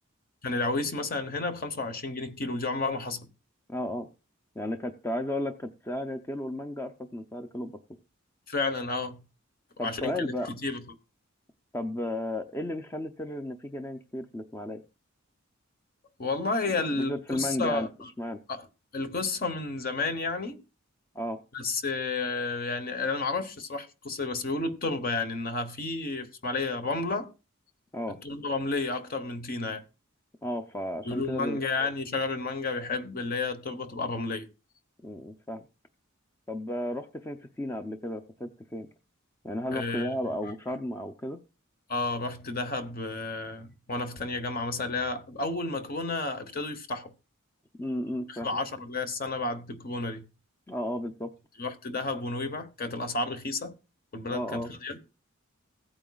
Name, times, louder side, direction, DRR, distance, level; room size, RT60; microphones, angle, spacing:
voice 1, 0.4-3.3 8.5-9.2 9.8-10.8 16.2-18.1 18.5-18.7 18.9-20.6 21.5-27.3 28.2-29.8 31.0-34.5 39.7-40.1 41.9-47.1 48.3-50.2 51.6-53.8 54.1-55.0, left 3 dB, 45° left, 1.0 m, -31 dB
voice 2, 3.7-4.1 4.6-7.8 9.8-10.5 11.7-14.8 16.9-17.9 18.2-18.4 21.1-21.4 27.9-28.2 30.4-31.6 35.0-35.7 36.5-38.9 39.4-41.4 47.8-48.5 50.7-51.3 54.3-54.7, left 1 dB, 15° left, 0.5 m, -33 dB
16.0 x 8.8 x 2.3 m
head